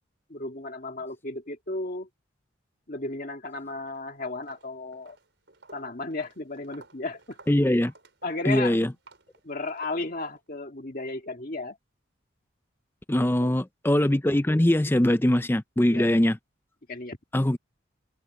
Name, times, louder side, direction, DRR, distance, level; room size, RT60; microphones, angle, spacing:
voice 1, 0.3-2.1 2.9-5.2 5.7-7.4 8.2-8.8 9.4-11.8 13.1-13.6 15.9-16.2 16.9-17.2, left 2 dB, 45° left, 2.1 m, -34 dB
Walk footsteps, 3.7-4.0 4.4-10.4, right 3 dB, 60° right, 5.4 m, -54 dB
voice 2, 7.5-7.9 8.5-8.9 13.1-16.4 17.3-17.6, left 1 dB, 10° left, 0.5 m, -22 dB
head